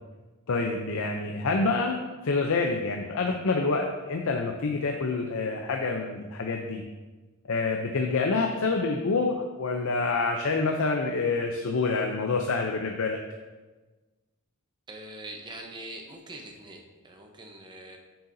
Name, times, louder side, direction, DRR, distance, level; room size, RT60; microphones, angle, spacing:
voice 1, 0.5-2.0 2.2-6.8 7.5-13.2, left 3 dB, 65° left, 3 dB, 0.6 m, -27 dB
voice 2, 14.9-18.0, right 1 dB, 20° right, 2 dB, 0.8 m, -43 dB
7.8 x 6.8 x 2.7 m, 1.2 s
head